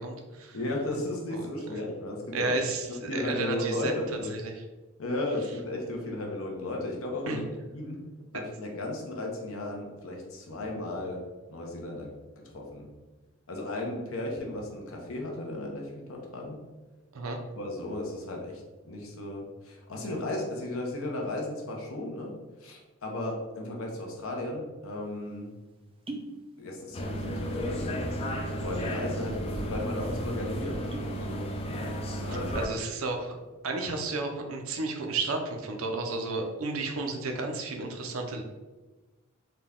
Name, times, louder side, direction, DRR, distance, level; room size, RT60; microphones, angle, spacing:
voice 1, 0.0-0.6 1.3-1.5 2.3-3.9 4.3-4.5 7.3-7.4 17.1-17.4 32.3-33.4 33.6-38.4, right 3 dB, 70° right, 3 dB, 0.6 m, -32 dB
voice 2, 0.5-2.6 2.9-4.4 5.0-7.4 7.7-8.0 8.3-11.2 11.5-12.9 13.5-16.6 17.6-25.5 26.6-31.5 32.2-32.6, left 1 dB, 70° left, 0 dB, 0.8 m, -35 dB
sound 1, 25.0-25.1 25.9-26.4 26.7-27.3 27.6-27.8 28.5-29.0 29.4-29.5 29.8-30.0 30.6-31.2 31.6-32.0, right 2 dB, 25° right, 0.5 m, -41 dB
sound 2, 26.9-32.7, equal, 25° left, 0.4 m, -33 dB
3.9 x 2.2 x 3.6 m, 1.2 s
head